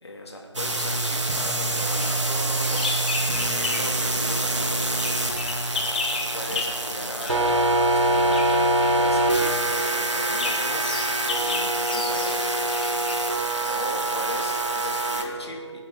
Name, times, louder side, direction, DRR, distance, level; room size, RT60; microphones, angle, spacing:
voice 1, 0.0-3.1 3.5-5.0 6.3-11.0 11.4-12.4 13.7-15.8, left 1 dB, 60° left, 0 dB, 3.0 m, -37 dB
sound 1, 0.5-15.2, right 2 dB, 70° right, 2.2 m, -25 dB
Bird vocalization bird call bird song, 1.8-4.0 4.3-13.8, left 4 dB, 15° left, 0.9 m, -34 dB
25.0 x 9.8 x 4.0 m, 2.3 s
figure-of-eight pair, 165°, 16 cm